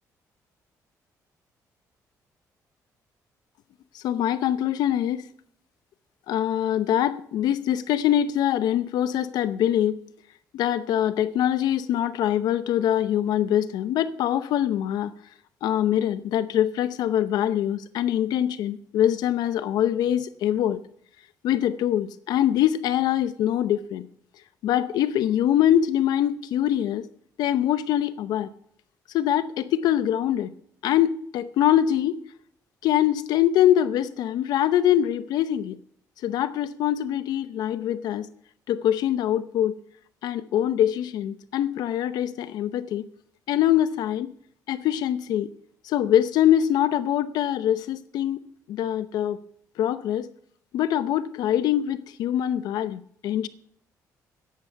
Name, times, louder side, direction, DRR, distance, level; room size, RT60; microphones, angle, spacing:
voice 1, 3.9-5.3 6.3-10.0 10.5-15.1 15.6-20.8 21.4-24.1 24.6-27.1 27.4-28.5 29.1-30.5 30.8-32.2 32.8-35.8 36.2-38.3 38.7-39.8 40.2-43.1 43.5-44.3 44.7-45.5 45.8-48.4 48.7-49.4 49.8-50.3 50.7-53.5, left 11 dB, 85° left, 0.8 m, -23 dB
14.0 x 10.5 x 4.7 m
cardioid pair, 115°, 7 cm